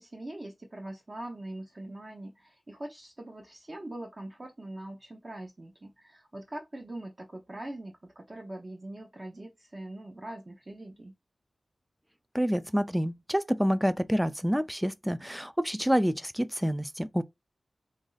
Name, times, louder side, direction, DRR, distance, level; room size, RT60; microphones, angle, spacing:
voice 1, 0.0-11.1, right 1 dB, 35° right, 0.7 m, -42 dB
voice 2, 12.3-17.2, equal, 5° right, 0.4 m, -28 dB
3.1 x 2.6 x 3.9 m
wide cardioid pair, 70°, 0 cm